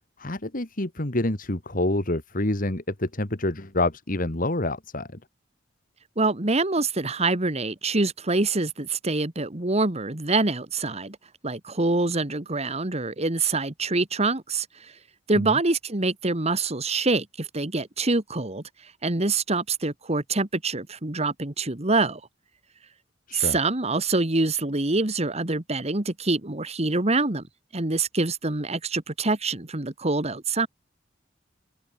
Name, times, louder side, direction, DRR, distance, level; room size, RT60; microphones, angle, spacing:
voice 1, 0.2-5.1 15.3-15.6 23.3-23.6, left 2 dB, 50° left, 2.4 m, -27 dB
voice 2, 6.2-11.2 11.4-14.9 15.3-22.2 23.3-27.4 27.7-30.7, right 3 dB, 35° right, 1.9 m, -25 dB
open air
head